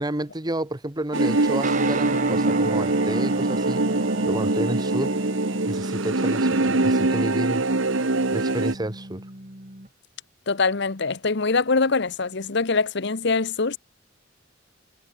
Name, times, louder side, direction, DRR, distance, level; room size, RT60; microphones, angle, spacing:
voice 1, 0.0-3.9 4.2-5.1 5.7-7.6 8.3-9.2, right 1 dB, 20° right, 1.4 m, -30 dB
sound 1, 1.1-8.7, right 2 dB, 70° right, 1.4 m, -23 dB
sound 2, 1.6-9.9, right 2 dB, 40° right, 4.0 m, -33 dB
voice 2, 10.5-13.8, left 4 dB, 60° left, 1.1 m, -23 dB
head